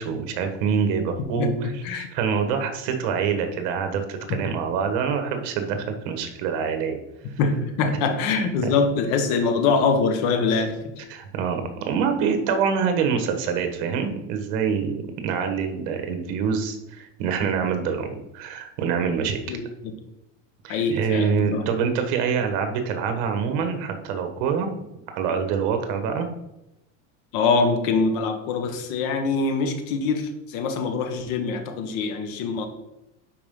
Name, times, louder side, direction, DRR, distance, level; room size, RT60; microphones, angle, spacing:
voice 1, 0.0-7.0 8.6-8.7 11.1-19.6 20.6-24.7 25.1-26.3, right 6 dB, 60° right, 6 dB, 1.5 m, -25 dB
voice 2, 7.4-10.9 19.5-19.6 20.7-21.6 27.3-32.7, left 4 dB, 60° left, 6 dB, 1.4 m, -23 dB
11.0 x 4.6 x 3.8 m, 0.90 s
supercardioid pair, 140°, 38 cm